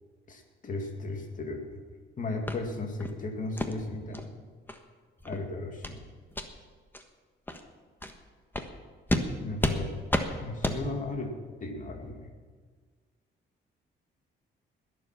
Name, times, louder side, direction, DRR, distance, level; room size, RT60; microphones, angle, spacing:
voice 1, 0.3-1.8 2.2-4.3 5.3-6.0 9.4-10.0 10.4-11.3 11.6-12.3, left 2 dB, 40° left, 3 dB, 2.3 m, -35 dB
sound 1, 2.5-2.6 3.0-3.2 3.6-3.7 4.1-4.2 4.7-4.8 5.2-5.4 5.8-6.0 6.3-6.5 6.9-7.0 7.5-7.6 8.0-8.1 8.5-8.7 9.1-9.3 9.6-9.8 10.1-10.3 10.6-10.8, left 1 dB, 10° left, 1.3 m, -30 dB
20.5 x 7.5 x 5.9 m, 1.5 s
cardioid pair, 90°, 20 cm